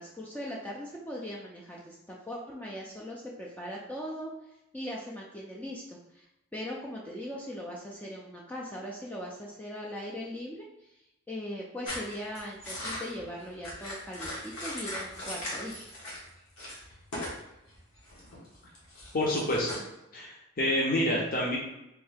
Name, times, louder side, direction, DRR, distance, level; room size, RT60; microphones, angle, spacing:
voice 1, 0.0-4.3 4.7-11.0 11.3-15.7, equal, 5° left, -4 dB, 0.3 m, -40 dB
sound 1, 11.9-16.3 16.6-17.4 17.7-19.8, left 1 dB, 85° left, 1.4 m, -39 dB
voice 2, 19.1-19.8 20.1-21.6, left 1 dB, 45° left, -4 dB, 0.7 m, -28 dB
3.5 x 2.7 x 3.4 m, 0.90 s
head